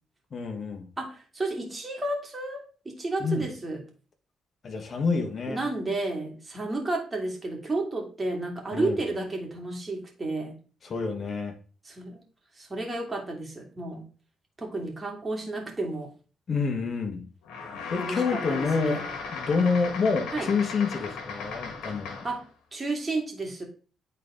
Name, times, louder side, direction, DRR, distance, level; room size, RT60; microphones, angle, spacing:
voice 1, 0.3-0.9 3.2-3.4 4.6-5.6 8.7-9.0 10.8-11.5 16.5-17.3 17.9-19.0 19.3-22.2, left 4 dB, 45° left, 4 dB, 1.6 m, -28 dB
voice 2, 1.0-3.8 5.5-10.6 11.8-12.2 12.6-14.0 14.6-16.1 18.0-19.1 20.3-20.5 22.2-22.4 22.7-23.6, right 2 dB, 25° right, 1 dB, 2.4 m, -32 dB
sound 1, 17.4-22.4, left 5 dB, 90° left, 1.5 m, -36 dB
9.2 x 4.1 x 3.7 m, 0.37 s
cardioid pair, 90°, 0 cm